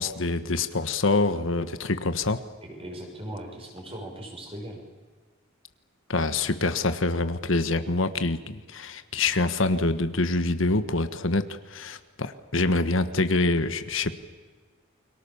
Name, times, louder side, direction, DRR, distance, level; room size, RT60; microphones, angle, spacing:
voice 1, 0.0-2.4 6.1-14.1, left 3 dB, 70° left, 10 dB, 1.4 m, -25 dB
voice 2, 2.6-4.8, right 1 dB, 30° right, 2 dB, 6.0 m, -39 dB
30.0 x 23.5 x 7.2 m, 1.4 s
head